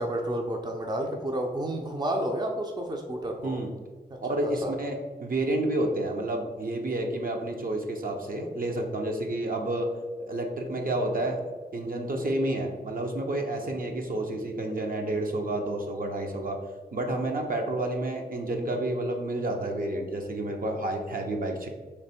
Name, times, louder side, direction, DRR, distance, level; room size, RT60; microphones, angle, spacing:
voice 1, 0.0-3.6 4.4-4.7, right 1 dB, 25° right, 2 dB, 0.5 m, -30 dB
voice 2, 4.2-9.9 10.2-11.4 11.7-16.6 16.9-21.7, right 1 dB, 55° right, 2 dB, 0.7 m, -30 dB
3.2 x 3.0 x 4.3 m, 1.4 s
cardioid pair, 50°, 17 cm